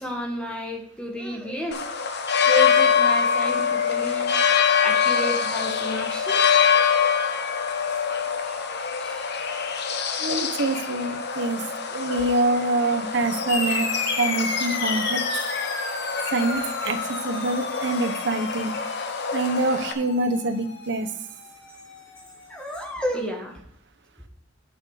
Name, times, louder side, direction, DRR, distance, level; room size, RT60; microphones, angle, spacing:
voice 1, 0.0-1.8 2.5-4.3 4.7-6.4 7.8-8.0 8.4-8.6 9.0-9.9 22.5-23.6, left 1 dB, 5° left, 0 dB, 1.5 m, -32 dB
sound 1, 1.7-19.9, left 6 dB, 60° left, 1.0 m, -24 dB
voice 2, 10.2-11.6 11.9-13.9 14.2-15.3 16.3-18.7 19.3-21.1, right 2 dB, 65° right, 8 dB, 1.0 m, -25 dB
sound 2, 13.5-22.4, left 3 dB, 80° left, 2.0 m, -33 dB
8.9 x 6.5 x 4.9 m, 0.69 s
head